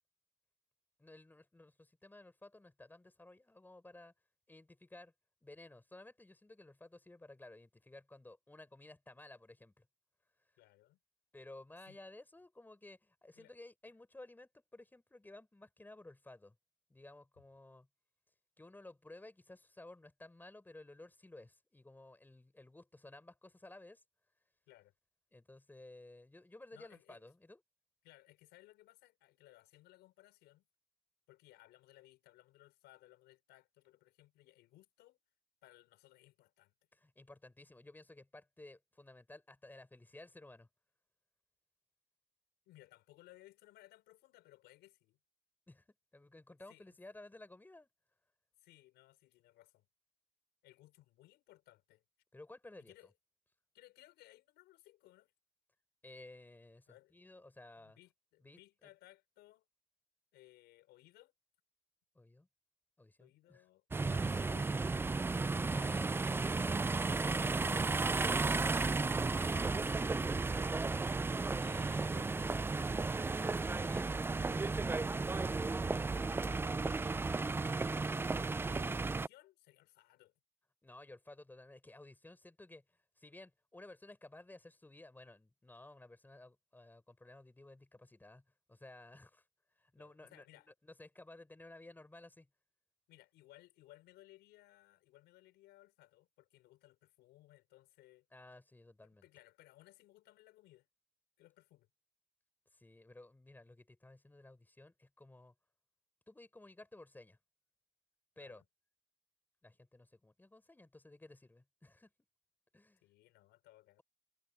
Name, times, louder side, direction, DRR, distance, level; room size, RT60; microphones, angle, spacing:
voice 1, 1.0-4.1 4.5-5.1 5.4-9.9 11.3-16.5 16.9-17.9 18.6-24.0 25.3-27.6 36.9-40.7 45.7-45.8 46.1-47.9 52.3-52.9 56.0-58.0 58.4-58.9 62.1-62.5 63.0-63.6 65.7-67.3 69.4-70.0 71.6-72.4 73.9-74.0 80.8-88.4 88.7-89.4 89.8-92.5 98.3-99.3 102.7-105.5 106.3-107.4 108.4-108.6 109.6-112.1 112.7-113.0, left 2 dB, 10° left, 6.1 m, -55 dB
voice 2, 10.6-11.0 11.9-12.0 13.3-13.5 24.7-24.9 26.7-27.2 28.0-30.7 31.3-35.2 35.6-36.7 42.7-45.2 46.7-47.0 48.6-49.9 50.6-52.0 52.8-53.1 53.7-55.3 56.9-57.1 57.8-59.6 60.3-61.3 63.2-65.2 69.8-70.4 71.7-73.2 77.4-80.3 90.0-90.7 93.1-98.3 99.0-100.9 101.4-101.9 108.4-108.7 113.0-114.0, left 16 dB, 85° left, 5.8 m, -62 dB
sound 1, 63.9-79.3, right 3 dB, 15° right, 0.4 m, -34 dB
cardioid pair, 110°, 17 cm